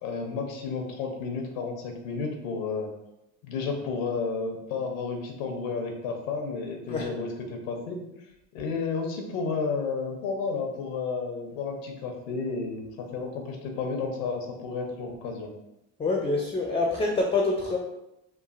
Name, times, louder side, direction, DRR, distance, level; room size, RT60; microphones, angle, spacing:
voice 1, 0.0-2.9 3.4-8.0 8.5-15.5, left 4 dB, 85° left, 3 dB, 0.6 m, -32 dB
voice 2, 16.0-17.8, left 3 dB, 15° left, 0 dB, 0.4 m, -26 dB
3.1 x 2.3 x 2.4 m, 0.88 s
supercardioid pair, 75°, 39 cm